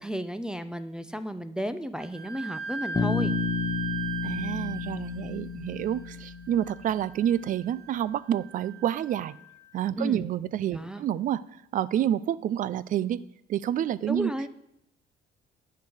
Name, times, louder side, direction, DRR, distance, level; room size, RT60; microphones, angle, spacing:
voice 1, 0.0-3.3 10.0-10.3 10.7-11.0 14.1-14.5, right 1 dB, 5° right, 9 dB, 0.5 m, -33 dB
Wind instrument woodwind instrument, 2.0-9.4, right 5 dB, 80° right, 2.1 m, -40 dB
Bass guitar, 2.9-7.0, left 5 dB, 15° left, 1.2 m, -31 dB
voice 2, 4.2-9.4 9.7-11.4 11.7-13.2 13.5-14.3, right 10 dB, 50° right, 19 dB, 0.5 m, -28 dB
10.5 x 4.7 x 7.9 m, 0.78 s
cardioid pair, 110°, 17 cm